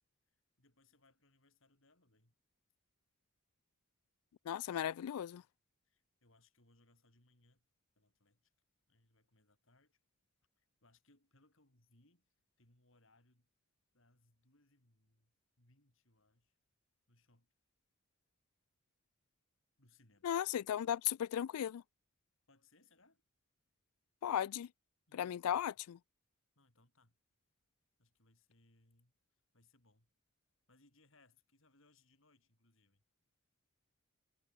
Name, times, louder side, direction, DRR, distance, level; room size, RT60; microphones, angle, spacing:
voice 1, 0.6-2.3 5.8-7.6 8.0-8.5 8.9-10.0 10.6-13.5 13.9-16.6 17.1-17.5 19.8-20.3 22.5-23.2 25.1-25.6 26.6-27.2 28.0-29.1 29.5-30.1 30.7-33.0, left 2 dB, 60° left, 4.5 m, -71 dB
voice 2, 4.5-5.4 20.2-21.8 24.2-24.7 25.1-26.0, left 10 dB, 85° left, 0.3 m, -36 dB
head